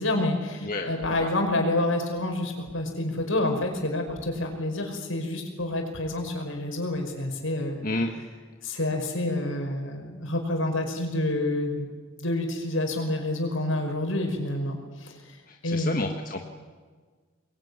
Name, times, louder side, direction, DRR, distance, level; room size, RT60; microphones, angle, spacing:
voice 1, 0.0-7.9 8.6-15.4 15.6-16.1, left 1 dB, 75° left, 4 dB, 5.5 m, -28 dB
voice 2, 0.6-1.3 7.8-8.1 15.5-16.5, left 2 dB, 40° left, 3 dB, 1.6 m, -30 dB
24.5 x 22.0 x 9.7 m, 1.5 s
head